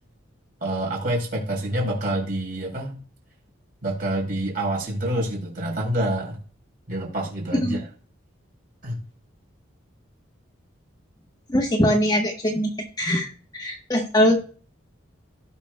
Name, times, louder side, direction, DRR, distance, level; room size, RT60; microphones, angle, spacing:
voice 1, 0.6-3.0 3.8-6.4 6.9-7.9 8.8-9.0, right 1 dB, 45° right, -1 dB, 3.9 m, -27 dB
voice 2, 11.5-14.5, equal, 20° left, 1 dB, 1.1 m, -22 dB
17.0 x 5.8 x 2.2 m, 0.40 s
head